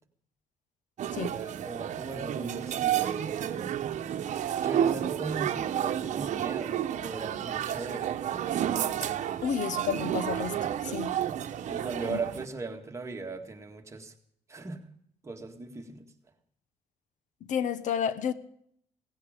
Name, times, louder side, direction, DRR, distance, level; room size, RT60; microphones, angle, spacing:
sound 1, 1.0-12.5, right 10 dB, 60° right, 1.0 m, -31 dB
voice 1, 1.2-3.7 4.6-8.2 11.7-14.1 14.5-14.9 15.2-16.1, right 3 dB, 20° right, 1.8 m, -38 dB
voice 2, 9.4-10.6 10.8-11.1 12.1-12.2 17.5-18.3, left 8 dB, 65° left, 0.9 m, -30 dB
17.5 x 16.5 x 5.1 m
cardioid pair, 125°, 14 cm